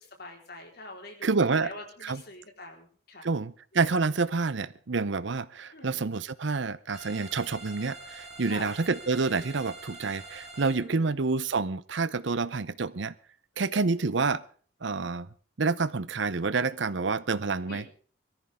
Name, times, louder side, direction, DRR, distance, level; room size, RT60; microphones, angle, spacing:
voice 1, 0.0-3.3 5.7-6.0 8.4-8.7 10.8-11.1 17.6-17.9, left 2 dB, 50° left, 2 dB, 4.2 m, -45 dB
voice 2, 1.2-1.7 2.0-2.2 3.2-13.1 13.6-14.4 14.8-15.3 15.6-17.8, right 4 dB, 65° right, 17 dB, 0.7 m, -28 dB
sound 1, 6.9-10.8, right 2 dB, 5° right, 5.8 m, -45 dB
22.5 x 14.0 x 3.6 m, 0.43 s
head